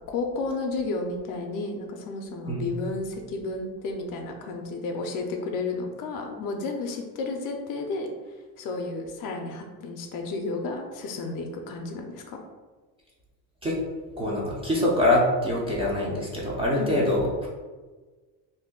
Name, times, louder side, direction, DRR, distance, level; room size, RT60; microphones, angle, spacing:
voice 1, 0.1-8.1 8.6-12.4 16.8-16.9, left 3 dB, 55° left, 3 dB, 0.5 m, -32 dB
voice 2, 2.5-2.8 13.6-13.8 14.2-17.5, left 1 dB, 15° right, -5 dB, 0.4 m, -24 dB
2.6 x 2.2 x 3.5 m, 1.3 s
cardioid pair, 140°, 41 cm